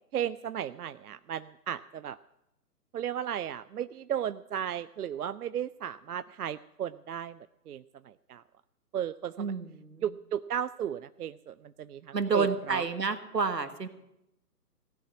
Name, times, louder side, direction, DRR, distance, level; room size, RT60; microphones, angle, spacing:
voice 1, 0.1-2.2 2.9-7.4 7.7-8.4 8.9-9.5 10.0-12.8, right 9 dB, 70° right, 14 dB, 0.5 m, -35 dB
voice 2, 9.4-10.0 12.1-13.9, right 4 dB, 90° right, 10 dB, 1.5 m, -29 dB
16.0 x 6.9 x 9.6 m, 0.85 s
figure-of-eight pair, 135°, 48 cm